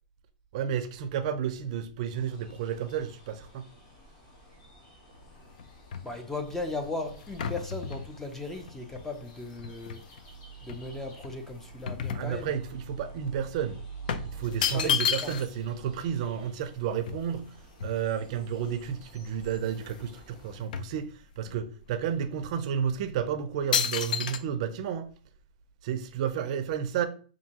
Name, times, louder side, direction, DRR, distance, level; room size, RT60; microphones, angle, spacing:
voice 1, 0.5-3.6 12.1-13.8 14.3-17.5 17.8-25.1 25.8-27.1, right 8 dB, 50° right, 0.5 m, -31 dB
sound 1, 2.1-20.6, left 1 dB, 35° left, 1.5 m, -55 dB
sound 2, 5.1-10.2 10.7-12.9 13.2-13.3 14.1-15.7 16.0-16.1 16.2-18.4 18.9-19.0 19.3-20.1 20.3-21.6 22.2-22.3 22.9-23.2 23.7-24.4, left 8 dB, 75° left, 0.4 m, -33 dB
voice 2, 6.0-10.1 10.6-12.5 14.7-15.3, left 2 dB, 5° left, 0.4 m, -37 dB
5.3 x 2.6 x 2.8 m
supercardioid pair, 160°, 5 cm